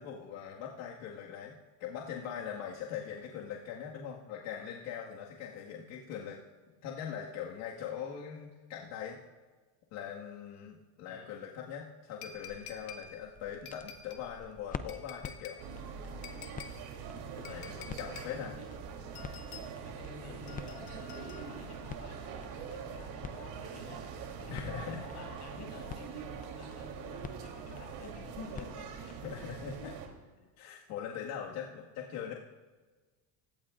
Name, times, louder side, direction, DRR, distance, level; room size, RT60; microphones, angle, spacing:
voice 1, 0.0-6.4 6.8-9.2 9.9-15.6 17.4-18.5 24.5-25.0 29.2-30.0 30.6-32.3, left 8 dB, 90° left, -3 dB, 1.9 m, -41 dB
sound 1, 12.2-13.1 13.7-14.3 14.9-15.6 16.2-16.8 17.4-18.3 19.2-19.7 20.5-21.7 22.7-22.8, left 7 dB, 55° left, 1.6 m, -49 dB
sound 2, 12.3-29.8, left 6 dB, 20° left, 0.5 m, -49 dB
sound 3, 15.6-30.1, right 6 dB, 70° right, 3.4 m, -44 dB
voice 2, 17.5-17.8 18.1-18.7 19.8-24.1 24.4-29.2 30.4-30.5 32.2-32.4, left 3 dB, 40° left, -3 dB, 7.0 m, -50 dB
30.0 x 17.0 x 2.5 m, 1.3 s
cardioid pair, 165°, 43 cm